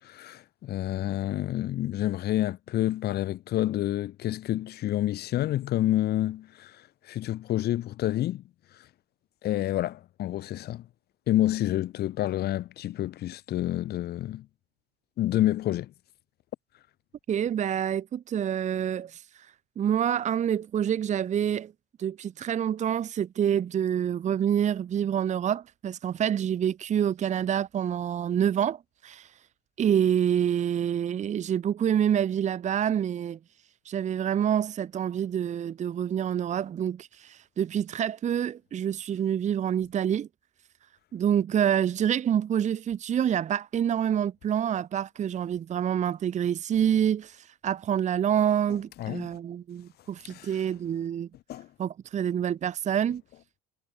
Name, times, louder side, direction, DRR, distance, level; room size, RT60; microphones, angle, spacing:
voice 1, 0.0-8.4 8.7-8.9 9.4-10.9 11.3-14.5 15.2-15.9 49.0-49.4 50.3-50.6 51.5-51.7, left 14 dB, 55° left, 6.2 m, -29 dB
voice 2, 17.3-19.5 19.8-21.7 22.0-29.3 29.8-33.4 33.8-40.3 41.1-51.3 51.8-53.2, right 9 dB, 35° right, 1.2 m, -27 dB
hypercardioid pair, 80°, 20 cm